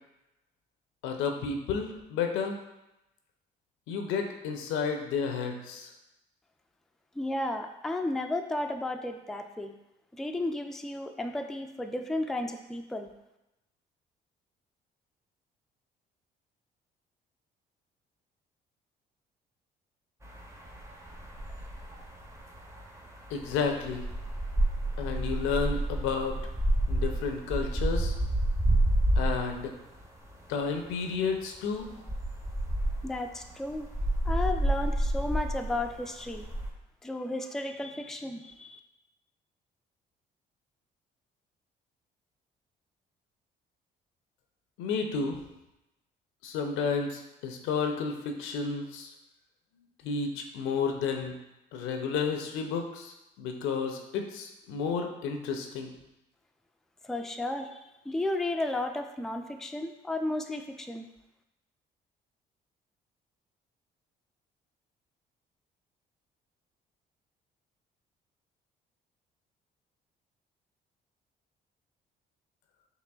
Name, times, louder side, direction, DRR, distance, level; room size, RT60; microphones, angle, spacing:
voice 1, 1.0-2.6 3.9-5.9 23.3-24.1 25.0-26.4 26.9-28.2 29.2-29.7 30.5-31.9 44.8-45.4 46.4-49.1 50.0-51.3 51.7-55.9, left 5 dB, 80° left, 4 dB, 0.5 m, -31 dB
voice 2, 7.1-9.7 10.1-13.1 33.0-33.9 34.3-36.5 37.0-38.8 57.0-57.8 58.1-61.1, left 2 dB, ahead, 5 dB, 0.3 m, -33 dB
sound 1, 20.2-29.7 30.0-30.1 30.5-30.9 31.1-31.3 31.8-36.7, right 1 dB, 15° right, 0.7 m, -29 dB
4.8 x 3.0 x 2.3 m, 0.93 s
supercardioid pair, 60°, 20 cm